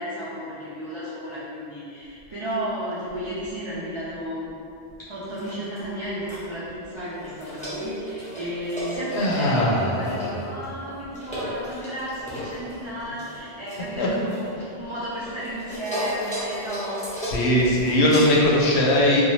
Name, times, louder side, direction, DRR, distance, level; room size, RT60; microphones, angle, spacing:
voice 1, 0.0-4.5 5.0-17.0, equal, 50° right, -11 dB, 0.3 m, -33 dB
sound 1, 5.2-6.5 7.0-14.8 15.2-18.7, equal, 10° left, 0.6 m, -35 dB
voice 2, 9.2-10.3 14.0-14.1 17.2-19.2, left 1 dB, 85° left, -4 dB, 0.9 m, -20 dB
2.6 x 2.2 x 3.0 m, 2.6 s
omnidirectional pair, 1.1 m